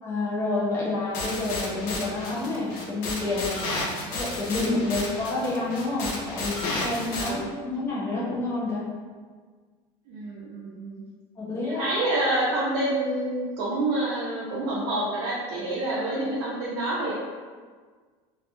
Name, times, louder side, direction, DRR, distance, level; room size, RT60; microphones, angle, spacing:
voice 1, 0.0-3.7 4.1-8.9 11.4-11.8, left 2 dB, 20° left, -6 dB, 0.6 m, -29 dB
sound 1, 1.1-7.3, left 2 dB, 75° left, 0.6 m, -32 dB
voice 2, 7.1-7.5 10.1-11.0 11.6-17.1, right 1 dB, 85° right, -8 dB, 0.6 m, -28 dB
2.3 x 2.1 x 2.9 m, 1.5 s
cardioid pair, 170°, 12 cm